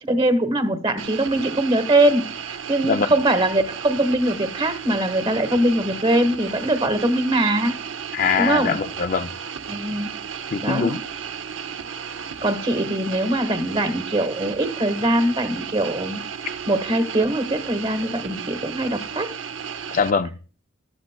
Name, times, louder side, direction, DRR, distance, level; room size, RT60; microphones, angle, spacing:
voice 1, 0.0-7.7 8.4-8.8 9.7-10.1 10.6-11.0 12.4-16.2 16.7-19.3, right 1 dB, 30° right, 1.2 m, -22 dB
sound 1, 1.0-20.1, right 7 dB, 75° right, 0.7 m, -34 dB
voice 2, 8.1-9.3 10.5-11.0 19.9-20.4, left 6 dB, 40° left, 0.4 m, -22 dB
13.5 x 12.5 x 2.2 m
head